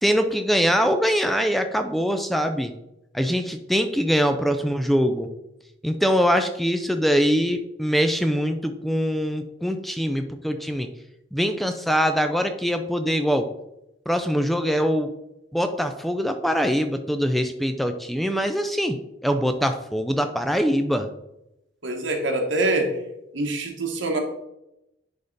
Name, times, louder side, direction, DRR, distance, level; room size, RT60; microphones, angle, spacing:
voice 1, 0.0-2.7 3.1-5.3 5.8-10.9 11.3-13.5 14.1-15.1 15.5-19.0 19.2-21.1, equal, ahead, 7 dB, 0.3 m, -23 dB
voice 2, 21.8-23.0 23.3-24.2, right 2 dB, 75° right, 3 dB, 1.3 m, -24 dB
10.5 x 3.6 x 4.0 m, 0.87 s
head